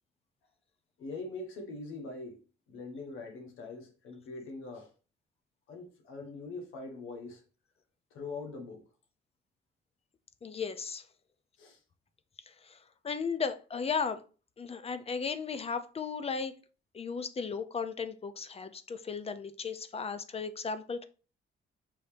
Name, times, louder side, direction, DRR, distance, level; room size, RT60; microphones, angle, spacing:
voice 1, 1.0-2.4 2.7-4.9 5.7-7.4 8.1-8.9 11.6-11.8, left 3 dB, 90° left, 1.0 m, -42 dB
voice 2, 10.4-11.0 12.5-12.8 13.0-14.2 14.6-16.5 16.9-21.0, left 5 dB, 30° left, 0.5 m, -35 dB
5.4 x 2.7 x 3.3 m
cardioid pair, 90°, 20 cm